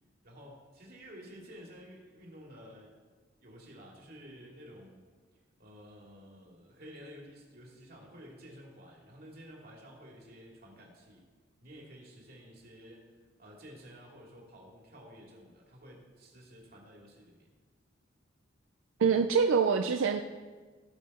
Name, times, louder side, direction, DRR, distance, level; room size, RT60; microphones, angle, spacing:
voice 1, 0.2-3.0 3.4-5.0 5.6-11.2 11.6-17.5, equal, 50° right, -1 dB, 2.4 m, -52 dB
voice 2, 19.0-20.2, right 6 dB, 90° right, 6 dB, 0.4 m, -25 dB
17.0 x 5.7 x 4.2 m, 1.4 s
head